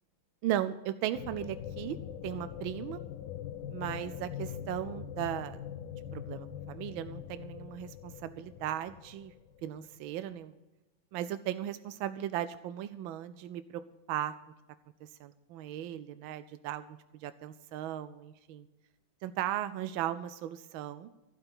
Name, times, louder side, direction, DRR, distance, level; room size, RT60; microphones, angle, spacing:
voice 1, 0.4-2.0 2.2-3.0 3.7-5.7 6.1-9.3 9.6-10.5 11.1-13.8 14.1-14.3 15.2-18.7 19.2-21.1, right 12 dB, 85° right, 12 dB, 1.4 m, -37 dB
sound 1, 1.1-9.9, left 10 dB, 70° left, 1.3 m, -42 dB
15.5 x 5.7 x 8.8 m, 1.1 s
omnidirectional pair, 2.1 m